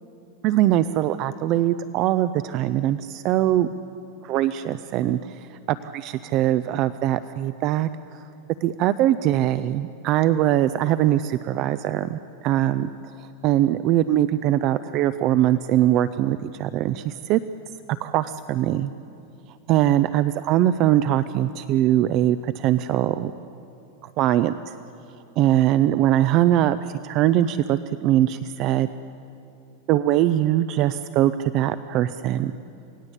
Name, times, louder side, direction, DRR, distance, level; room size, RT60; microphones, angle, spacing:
voice 1, 0.4-3.7 4.2-5.4 5.7-7.9 8.6-12.9 13.4-17.4 18.0-18.9 19.7-23.3 24.2-24.7 25.4-26.8 27.0-28.9 29.9-32.5, right 13 dB, 35° right, 13 dB, 0.5 m, -21 dB
28.0 x 18.5 x 8.2 m, 2.8 s
supercardioid pair, 170°, 0 cm